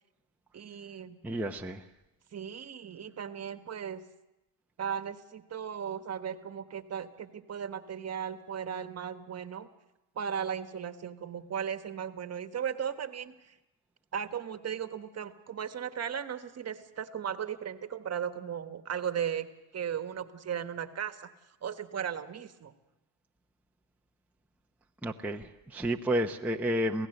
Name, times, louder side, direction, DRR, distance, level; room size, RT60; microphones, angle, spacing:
voice 1, 0.5-1.2 2.3-4.0 4.8-9.7 10.1-13.5 14.1-19.5 19.7-21.2 21.6-22.7, right 8 dB, 35° right, 10 dB, 1.4 m, -36 dB
voice 2, 1.2-1.9 25.0-27.1, right 1 dB, 5° right, 1 dB, 0.8 m, -31 dB
26.5 x 16.5 x 7.9 m, 1.0 s
supercardioid pair, 105°, 46 cm